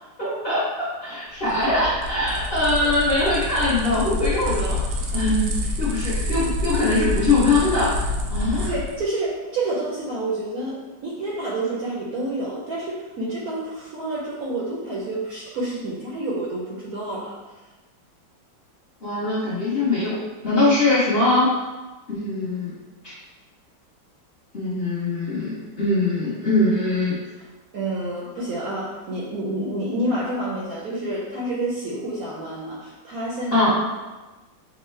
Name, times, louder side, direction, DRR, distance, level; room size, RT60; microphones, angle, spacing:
voice 1, 0.2-0.6 1.0-4.8 5.1-7.9 8.3-8.7 19.0-20.2 20.4-21.5 22.1-22.7 23.0-23.1 24.5-27.1 33.5-33.7, left 2 dB, 40° left, -10 dB, 1.0 m, -22 dB
sound 1, 1.4-9.0, left 2 dB, 90° right, 0.7 m, -27 dB
voice 2, 8.6-17.4 27.7-33.6, right 2 dB, 65° right, -5 dB, 0.9 m, -28 dB
6.2 x 2.2 x 3.1 m, 1.2 s
omnidirectional pair, 2.1 m